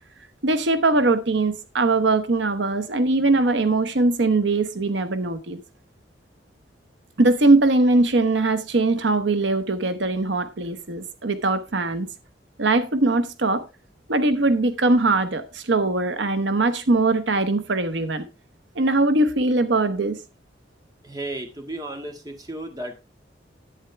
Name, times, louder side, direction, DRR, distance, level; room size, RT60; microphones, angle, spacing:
voice 1, 0.4-5.6 7.2-12.1 12.6-13.6 14.1-18.2 18.8-20.2, right 2 dB, 85° right, 1.0 m, -21 dB
voice 2, 21.0-23.0, right 1 dB, 20° right, 1.9 m, -34 dB
11.0 x 8.8 x 3.4 m
head